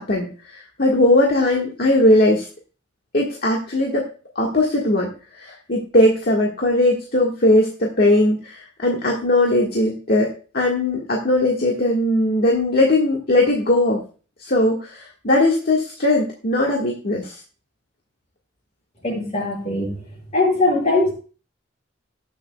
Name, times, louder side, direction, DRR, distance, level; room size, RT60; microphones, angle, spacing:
voice 1, 0.0-2.5 3.1-4.1 4.4-14.0 14.4-17.4, left 1 dB, 55° left, -1 dB, 1.6 m, -19 dB
voice 2, 19.0-20.1 20.3-21.1, left 2 dB, 35° left, -2 dB, 6.2 m, -20 dB
18.5 x 7.2 x 2.2 m, 0.37 s
head